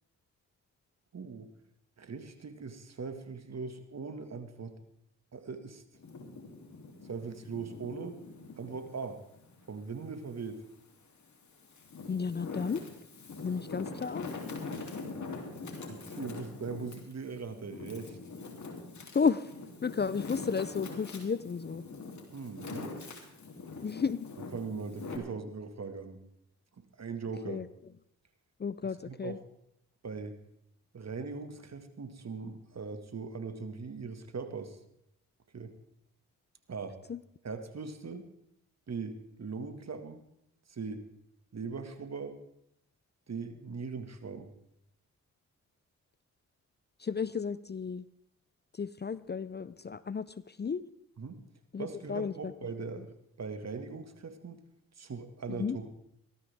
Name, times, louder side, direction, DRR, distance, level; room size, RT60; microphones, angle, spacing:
voice 1, 1.1-1.5 2.0-4.8 5.3-5.8 7.0-8.2 8.6-9.2 9.7-10.6 15.9-18.2 22.3-22.9 24.5-26.2 26.8-27.6 29.1-29.4 30.0-30.4 30.9-34.8 35.5-35.7 36.7-37.0 37.4-38.2 38.9-40.2 40.7-41.0 41.5-42.4 43.3-44.5 51.2-51.4 51.8-54.6 55.0-55.9, right 4 dB, 45° right, 8 dB, 2.1 m, -40 dB
Wind, 5.9-8.8 9.3-10.6 11.2-25.2, left 3 dB, 55° left, 3.2 m, -43 dB
voice 2, 12.1-12.8 13.4-14.3 19.1-19.5 19.8-21.8 23.8-24.3 27.5-27.7 28.6-29.4 37.1-37.2 47.0-48.0 48.7-50.8 51.7-52.5 53.0-53.1 55.5-55.8, left 5 dB, 30° left, 17 dB, 0.6 m, -33 dB
18.5 x 13.5 x 3.6 m, 0.77 s
supercardioid pair, 40°, 35 cm